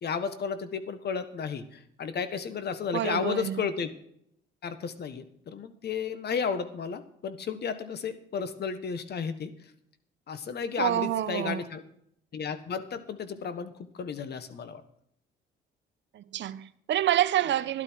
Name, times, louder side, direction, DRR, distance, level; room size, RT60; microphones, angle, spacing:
voice 1, 0.0-3.9 4.6-9.5 10.3-11.8 12.3-13.7 14.0-14.8, left 6 dB, 55° left, 1.4 m, -33 dB
voice 2, 2.9-3.7 10.8-11.6 16.1-17.8, right 12 dB, 65° right, 0.8 m, -27 dB
12.5 x 11.5 x 4.6 m
cardioid pair, 90°, 20 cm